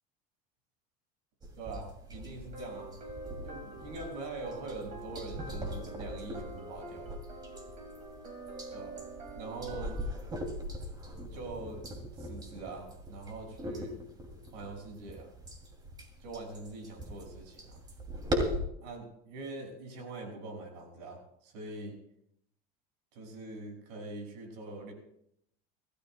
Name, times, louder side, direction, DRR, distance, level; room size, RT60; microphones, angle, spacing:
sound 1, 1.4-18.6, equal, 20° right, 2.7 m, -40 dB
voice 1, 1.5-3.0 3.4-7.2 8.7-9.0 9.3-10.0 11.3-11.8 12.1-14.0 14.5-15.3 16.2-17.8 18.8-22.0 23.1-24.9, right 3 dB, 85° right, 2 dB, 5.9 m, -43 dB
sound 2, 2.5-10.2, right 2 dB, 35° right, 5.2 m, -46 dB
29.5 x 13.5 x 2.3 m, 0.74 s
supercardioid pair, 140°, 20 cm